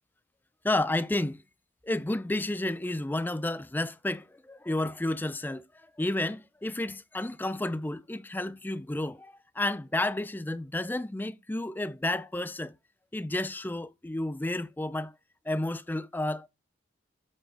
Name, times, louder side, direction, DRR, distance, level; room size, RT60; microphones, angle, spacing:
voice 1, 0.6-1.4 1.9-5.6 6.0-12.7 13.1-15.1 15.5-16.5, left 1 dB, 10° left, 0.4 m, -31 dB
7.6 x 3.7 x 4.8 m
head